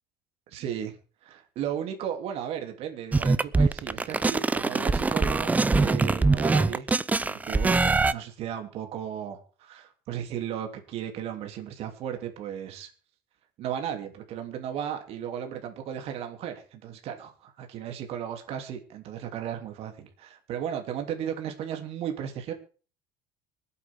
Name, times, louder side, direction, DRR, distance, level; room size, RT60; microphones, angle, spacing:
voice 1, 0.5-1.0 1.2-6.9 7.3-12.9 13.6-22.5, right 9 dB, 60° right, 5 dB, 2.9 m, -35 dB
sound 1, 3.1-8.1, right 3 dB, 15° right, 0.6 m, -23 dB
24.5 x 8.5 x 3.6 m, 0.39 s
cardioid pair, 115°, 12 cm